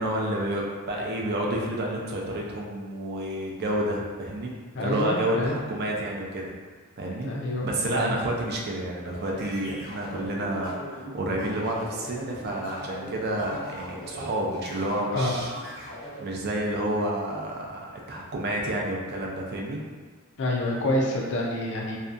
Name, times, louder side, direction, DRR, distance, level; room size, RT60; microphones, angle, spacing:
voice 1, 0.0-4.5 4.8-6.5 7.0-7.3 7.6-15.5 15.8-19.8, right 1 dB, 45° right, -1 dB, 0.4 m, -30 dB
voice 2, 4.7-5.6 7.2-8.2 15.1-15.3 20.4-22.0, left 1 dB, 55° left, -2 dB, 0.4 m, -27 dB
sound 1, 9.0-16.2, equal, 90° left, 1.3 m, -40 dB
2.7 x 2.2 x 2.4 m, 1.5 s
head